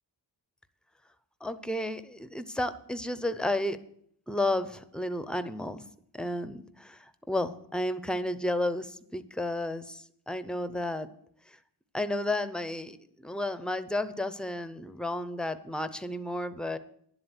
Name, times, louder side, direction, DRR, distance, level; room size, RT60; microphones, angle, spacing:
voice 1, 1.4-3.8 4.3-5.8 6.1-11.1 11.9-16.8, left 1 dB, ahead, 12 dB, 0.6 m, -32 dB
11.0 x 7.8 x 8.1 m, 0.68 s
wide cardioid pair, 135°, 41 cm